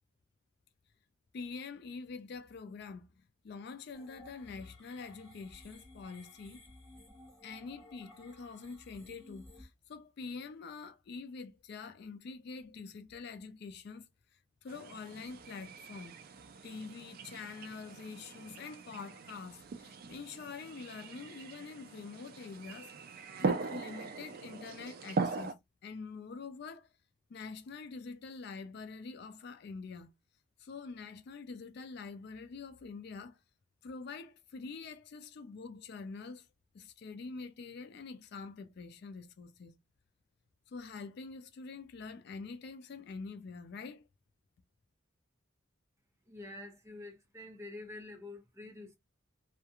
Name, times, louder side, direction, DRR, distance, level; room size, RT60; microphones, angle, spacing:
voice 1, 1.3-6.6 7.4-14.1 14.3-16.2 16.6-23.0 23.4-25.5 25.8-26.9 27.3-30.1 30.6-33.4 33.8-36.5 36.7-39.8 40.7-44.1, left 4 dB, 55° left, 0.3 m, -46 dB
sound 1, 3.9-9.6, left 1 dB, ahead, 1.1 m, -57 dB
sound 2, 14.7-25.5, right 4 dB, 50° right, 0.3 m, -40 dB
voice 2, 46.3-49.0, left 2 dB, 15° right, 0.6 m, -47 dB
2.3 x 2.1 x 2.8 m
head